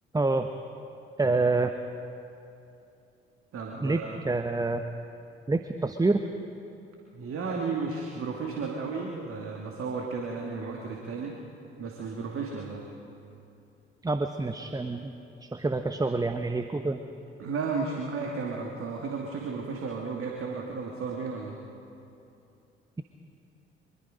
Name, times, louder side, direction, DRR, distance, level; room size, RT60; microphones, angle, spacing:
voice 1, 0.1-0.5 1.2-1.7 3.8-4.8 5.5-6.3 14.0-15.1 15.4-17.0, right 3 dB, 15° right, 8 dB, 1.0 m, -27 dB
voice 2, 3.5-4.2 7.1-11.4 11.8-12.9 17.4-21.6, right 4 dB, 50° right, 0 dB, 2.4 m, -33 dB
24.5 x 22.0 x 5.2 m, 2.7 s
figure-of-eight pair, 45°, 29 cm